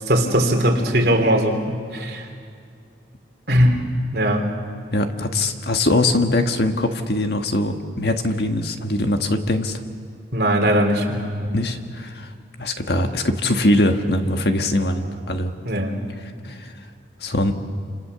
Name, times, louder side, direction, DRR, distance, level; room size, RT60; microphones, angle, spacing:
voice 1, 0.0-2.2 3.5-3.8 4.1-4.5 10.3-11.5 15.7-16.0, equal, 60° right, 2 dB, 3.5 m, -20 dB
voice 2, 4.9-9.8 11.5-12.3 12.6-15.5 16.4-16.7 17.2-17.5, left 1 dB, 65° left, 6 dB, 1.6 m, -22 dB
28.0 x 27.0 x 7.0 m, 2.2 s
head